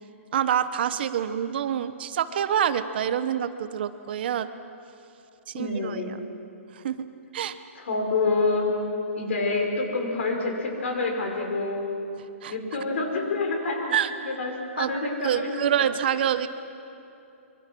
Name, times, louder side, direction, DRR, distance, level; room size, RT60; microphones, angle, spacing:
voice 1, 0.3-4.5 5.5-6.2 6.7-7.1 7.3-7.6 12.4-12.5 13.9-14.1 14.8-14.9 15.2-16.5, right 9 dB, 45° right, 12 dB, 1.0 m, -26 dB
voice 2, 5.5-6.2 7.8-8.7 9.1-11.8 12.5-13.9 14.3-14.5 14.8-15.9, left 3 dB, 60° left, 2 dB, 5.4 m, -27 dB
26.0 x 24.0 x 6.2 m, 2.7 s
hypercardioid pair, 165°, 7 cm